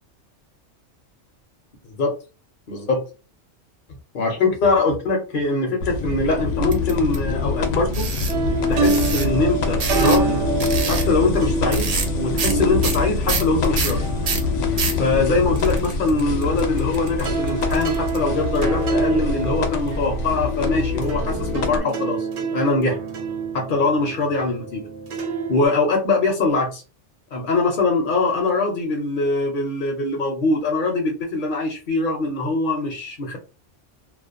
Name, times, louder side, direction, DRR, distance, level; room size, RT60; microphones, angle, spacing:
voice 1, 1.8-2.2 2.7-3.0 4.1-8.1 8.7-10.4 10.9-14.1 15.0-22.3 22.5-23.0 23.5-24.8 25.5-26.8 27.3-33.4, left 3 dB, 55° left, 1 dB, 0.7 m, -22 dB
sound 1, 5.8-21.8, left 4 dB, 90° left, 0.9 m, -24 dB
sound 2, 6.7-7.2 7.9-8.4 8.8-9.3 9.8-10.3 10.6-11.1 11.7-12.1 12.4-12.6 12.8-15.0 15.6-18.2, right 5 dB, 55° right, 0.4 m, -27 dB
sound 3, 8.3-16.9 17.2-25.7, right 4 dB, 70° right, 0.9 m, -28 dB
2.4 x 2.1 x 2.4 m, 0.31 s
omnidirectional pair, 1.2 m